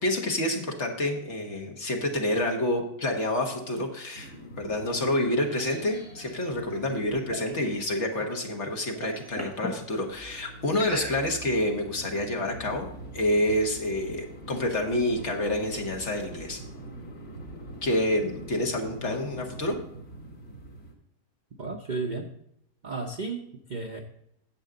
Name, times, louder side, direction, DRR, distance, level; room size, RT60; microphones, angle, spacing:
voice 1, 0.0-12.9 13.1-16.6 17.8-19.8, left 1 dB, 50° left, 2 dB, 1.7 m, -28 dB
sound 1, 4.1-20.9, right 1 dB, 75° left, 2.5 m, -45 dB
sound 2, 5.3-8.4 8.8-9.8 10.7-11.6, equal, 10° left, 1.5 m, -39 dB
voice 2, 21.6-22.3 22.8-24.0, right 3 dB, 45° right, 3 dB, 0.6 m, -33 dB
10.0 x 7.6 x 3.8 m, 0.78 s
omnidirectional pair, 1.6 m